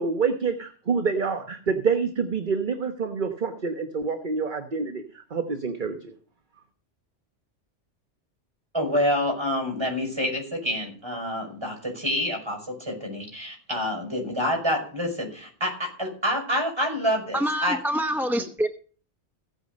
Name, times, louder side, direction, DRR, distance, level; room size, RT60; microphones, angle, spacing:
voice 1, 0.0-6.1, right 5 dB, 45° right, 6 dB, 1.3 m, -27 dB
voice 2, 8.7-17.8, equal, 20° right, 2 dB, 5.7 m, -27 dB
voice 3, 17.3-18.7, equal, ahead, 6 dB, 0.7 m, -26 dB
15.5 x 9.2 x 5.3 m, 0.41 s
omnidirectional pair, 1.2 m